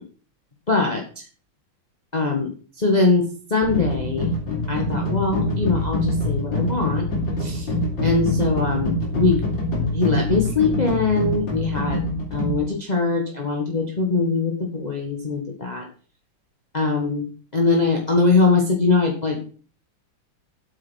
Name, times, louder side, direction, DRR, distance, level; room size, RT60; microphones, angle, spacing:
voice 1, 0.7-1.2 2.1-2.5 2.8-4.3 4.7-7.1 7.4-7.7 8.0-9.4 9.9-12.0 12.3-15.9 16.7-17.3 17.5-19.4, left 3 dB, 25° left, 0 dB, 1.6 m, -22 dB
sound 1, 3.6-12.6, left 1 dB, 75° left, 4.0 m, -25 dB
8.5 x 6.8 x 6.4 m, 0.40 s
omnidirectional pair, 2.1 m